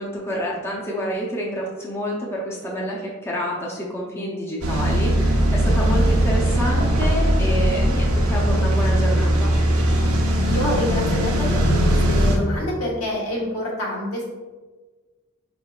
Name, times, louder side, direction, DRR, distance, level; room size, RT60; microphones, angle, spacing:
voice 1, 0.0-9.5, equal, 10° left, -4 dB, 0.6 m, -28 dB
sound 1, 4.6-12.4, equal, 85° right, 0.7 m, -19 dB
voice 2, 10.5-14.2, left 1 dB, 75° left, -4 dB, 1.4 m, -27 dB
5.1 x 3.7 x 2.4 m, 1.3 s
head